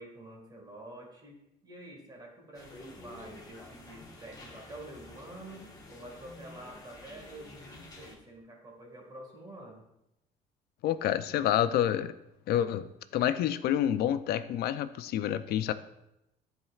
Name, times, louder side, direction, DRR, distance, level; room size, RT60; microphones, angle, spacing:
voice 1, 0.0-9.8, right 1 dB, 25° right, 0 dB, 1.8 m, -48 dB
sound 1, 2.5-8.1, left 2 dB, 20° left, 1.3 m, -50 dB
voice 2, 10.8-12.1 12.5-15.7, left 11 dB, 70° left, 13 dB, 0.4 m, -28 dB
11.0 x 4.4 x 2.4 m, 0.86 s
cardioid pair, 110°, 17 cm